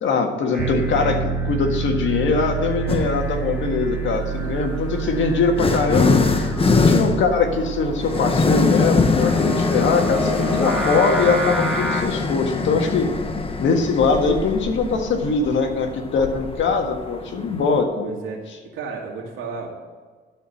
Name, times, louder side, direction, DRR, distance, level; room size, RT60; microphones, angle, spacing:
voice 1, 0.0-6.2 6.6-13.1 13.6-18.1, left 4 dB, 70° left, 4 dB, 1.6 m, -22 dB
Singing, 0.5-12.0, equal, ahead, 2.4 m, -32 dB
Piano, 0.6-17.3, right 7 dB, 70° right, 1.3 m, -31 dB
sound 1, 2.9-3.3 4.3-17.8, left 4 dB, 30° left, 1.0 m, -23 dB
voice 2, 18.0-19.7, right 4 dB, 85° right, -1 dB, 2.4 m, -33 dB
12.5 x 4.7 x 7.1 m, 1.5 s
cardioid pair, 90°, 20 cm